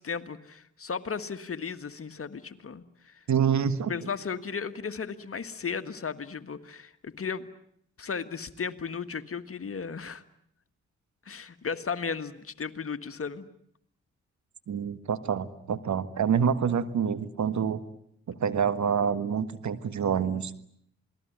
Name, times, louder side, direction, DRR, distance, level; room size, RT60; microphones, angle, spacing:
voice 1, 0.0-3.2 3.9-7.5 8.0-10.2 11.2-13.5, left 6 dB, 45° left, 10 dB, 1.7 m, -35 dB
voice 2, 3.3-3.9 14.7-17.8 18.3-20.5, right 7 dB, 60° right, 13 dB, 1.7 m, -27 dB
28.0 x 20.0 x 9.4 m, 0.71 s
hypercardioid pair, 40°, 32 cm